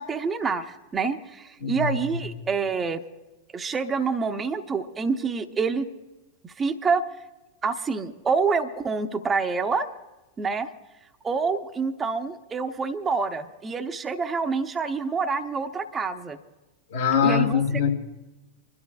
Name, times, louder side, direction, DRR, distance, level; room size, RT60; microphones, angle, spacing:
voice 1, 0.0-3.0 3.5-5.9 6.4-7.0 7.6-9.9 10.4-10.7 11.2-16.4 17.2-17.6, right 5 dB, 20° right, 0.8 m, -27 dB
voice 2, 1.6-1.9 16.9-17.9, left 7 dB, 60° left, 1.7 m, -22 dB
29.5 x 12.5 x 2.3 m
figure-of-eight pair, 90°, 0 cm